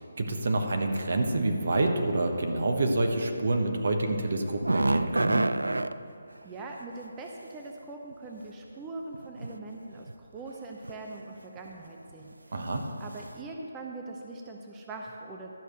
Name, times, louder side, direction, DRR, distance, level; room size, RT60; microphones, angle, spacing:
voice 1, 0.0-5.4 12.5-12.9, right 2 dB, 60° right, 4 dB, 1.1 m, -27 dB
sound 1, 4.4-5.9 8.1-8.2 9.1-9.6 9.9-10.1 10.8-11.2 11.6-11.7 12.1-12.2, right 2 dB, 85° right, 0.3 m, -27 dB
voice 2, 6.4-12.6 13.0-15.6, right 2 dB, 15° right, 1 dB, 0.6 m, -42 dB
12.0 x 5.0 x 6.5 m, 2.6 s
figure-of-eight pair, 150°, 0 cm